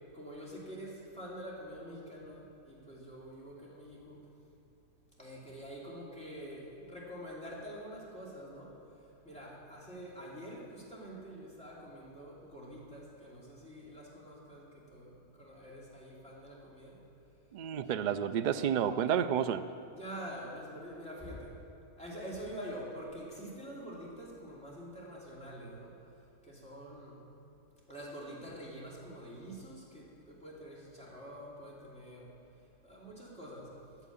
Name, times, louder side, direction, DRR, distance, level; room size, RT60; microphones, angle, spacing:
voice 1, 0.1-4.2 5.2-8.8 9.2-17.0 19.9-21.6 22.0-26.0 26.4-27.3 27.9-32.3 32.8-33.8, equal, 5° left, -7 dB, 2.9 m, -46 dB
voice 2, 17.5-19.6, right 8 dB, 70° right, 11 dB, 0.4 m, -30 dB
9.7 x 9.2 x 8.5 m, 2.7 s
omnidirectional pair, 1.3 m